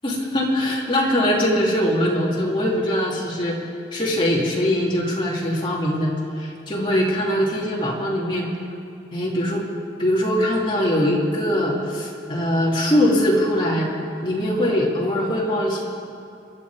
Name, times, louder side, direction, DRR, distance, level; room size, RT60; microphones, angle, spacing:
voice 1, 0.0-3.6 3.9-8.5 9.1-9.7 10.0-13.9 14.2-15.8, equal, 25° left, -4 dB, 2.6 m, -22 dB
25.0 x 10.0 x 4.8 m, 2.7 s
head